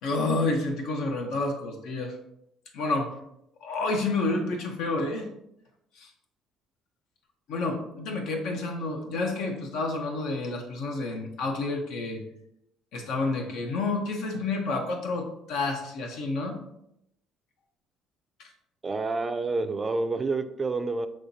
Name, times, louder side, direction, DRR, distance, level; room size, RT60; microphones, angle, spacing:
voice 1, 0.0-2.1 2.7-3.1 3.6-5.3 6.0-6.1 7.5-12.2 12.9-16.6 18.4-18.5, left 3 dB, 75° left, 3 dB, 0.8 m, -29 dB
voice 2, 18.8-21.1, right 3 dB, 25° right, 9 dB, 0.4 m, -28 dB
6.3 x 3.1 x 2.7 m, 0.80 s
supercardioid pair, 90°, 0 cm